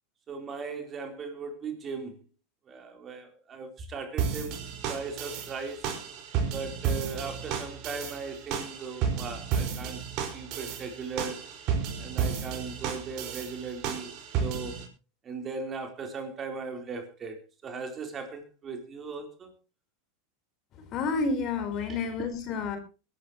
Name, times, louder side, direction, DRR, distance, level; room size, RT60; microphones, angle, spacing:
voice 1, 0.3-2.2 2.7-4.6 4.9-5.9 6.5-10.0 10.3-11.4 12.0-14.1 14.4-14.8 15.2-17.4 17.6-19.5 21.9-22.1, right 4 dB, 30° right, 3.9 m, -38 dB
sound 1, 4.2-14.8, right 7 dB, 50° right, 5.2 m, -32 dB
voice 2, 20.8-22.8, left 4 dB, 45° left, 4.3 m, -30 dB
22.5 x 12.0 x 3.1 m
hypercardioid pair, 115°, 0 cm